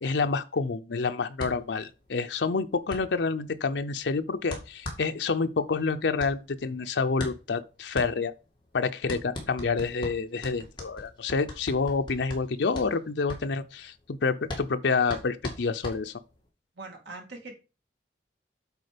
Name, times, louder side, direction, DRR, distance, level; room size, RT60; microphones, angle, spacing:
voice 1, 0.0-8.3 8.7-16.1, left 4 dB, 70° left, 0.6 m, -28 dB
sound 1, 1.4-16.5, left 1 dB, 25° left, 2.0 m, -41 dB
voice 2, 16.8-17.5, right 3 dB, 75° right, 2.3 m, -42 dB
8.2 x 4.2 x 5.1 m
head